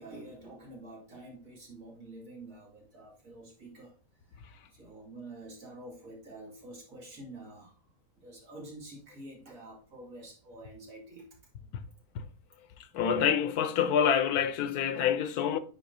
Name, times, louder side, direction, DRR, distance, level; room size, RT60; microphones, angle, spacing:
voice 1, 0.0-3.9 4.3-4.4 4.7-7.7 8.2-11.3, right 2 dB, 65° right, 2.7 m, -48 dB
voice 2, 12.9-15.6, left 8 dB, 85° left, 1.2 m, -26 dB
9.5 x 4.2 x 2.7 m
omnidirectional pair, 1.6 m